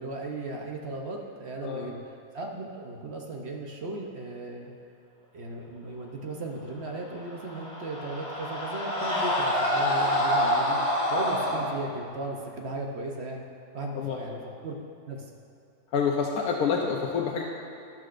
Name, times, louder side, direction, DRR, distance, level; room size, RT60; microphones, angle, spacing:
voice 1, 0.0-4.7 5.3-10.8 11.1-13.4 13.7-14.8 15.1-15.3, right 2 dB, 50° right, 1 dB, 1.0 m, -36 dB
voice 2, 1.6-1.9 13.9-14.4 15.9-17.4, left 6 dB, 90° left, 0 dB, 1.3 m, -28 dB
Screaming, 7.2-11.6, equal, 65° left, 2.4 m, -27 dB
12.5 x 10.5 x 2.6 m, 2.7 s
omnidirectional pair, 1.6 m